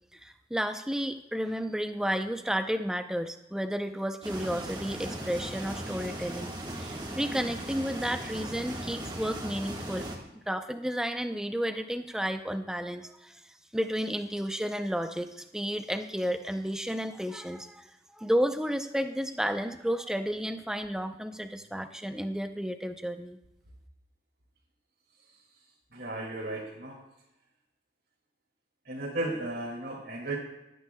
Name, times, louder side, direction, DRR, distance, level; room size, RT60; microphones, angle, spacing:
voice 1, 0.1-6.5 6.8-10.1 10.5-13.4 13.7-23.4, equal, 5° right, 8 dB, 0.5 m, -32 dB
sound 1, 4.2-10.2, right 1 dB, 25° right, 1.5 m, -38 dB
voice 2, 25.9-27.0 28.8-30.4, right 2 dB, 70° right, -5 dB, 2.2 m, -35 dB
19.5 x 9.3 x 2.2 m, 0.93 s
head